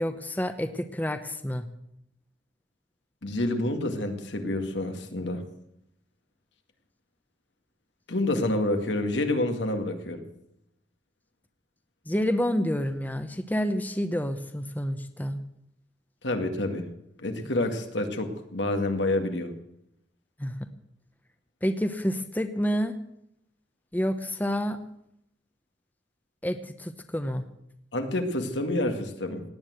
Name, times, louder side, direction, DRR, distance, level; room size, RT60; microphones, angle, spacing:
voice 1, 0.0-1.6 12.1-15.4 20.4-20.7 21.6-23.0 23.9-24.8 26.4-27.5, equal, 10° left, 9 dB, 0.8 m, -29 dB
voice 2, 3.2-5.4 8.1-10.2 16.2-16.9 17.2-19.5 27.9-29.4, left 1 dB, 85° left, 5 dB, 2.1 m, -28 dB
17.5 x 9.6 x 8.0 m, 0.78 s
head